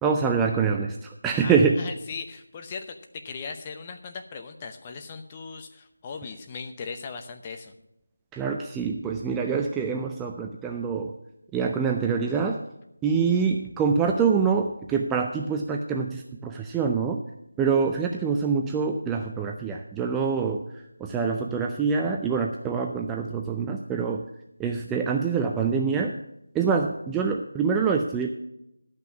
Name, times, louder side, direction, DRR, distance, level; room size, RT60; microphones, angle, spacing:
voice 1, 0.0-1.8 8.3-11.1 11.5-12.6 13.0-17.2 17.6-20.6 21.0-24.2 24.6-26.2 26.5-28.3, right 5 dB, 5° right, 2 dB, 0.4 m, -25 dB
voice 2, 1.3-7.7, left 5 dB, 20° left, 6 dB, 0.8 m, -38 dB
12.0 x 5.9 x 8.2 m, 0.85 s
figure-of-eight pair, 170°, 0 cm